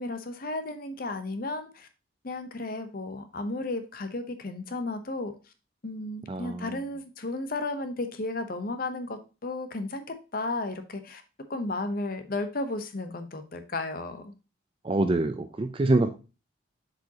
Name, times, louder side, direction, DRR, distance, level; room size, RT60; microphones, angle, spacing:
voice 1, 0.0-1.9 2.2-5.3 5.8-11.2 11.5-14.3, left 2 dB, 50° left, 8 dB, 0.8 m, -34 dB
voice 2, 6.3-6.8 14.8-16.1, right 2 dB, 25° right, 8 dB, 0.4 m, -25 dB
7.8 x 5.0 x 2.8 m, 0.31 s
head